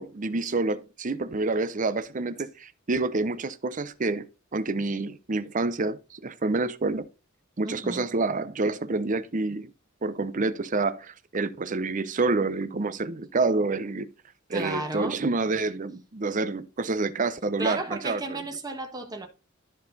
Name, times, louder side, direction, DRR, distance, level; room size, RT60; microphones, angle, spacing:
voice 1, 0.0-4.3 4.5-7.1 7.6-9.7 10.0-14.1 14.5-18.4, right 3 dB, 40° right, 0.7 m, -28 dB
voice 2, 7.6-8.0 14.5-15.2 17.6-19.3, right 2 dB, 20° right, 1.4 m, -33 dB
13.0 x 4.4 x 4.0 m
head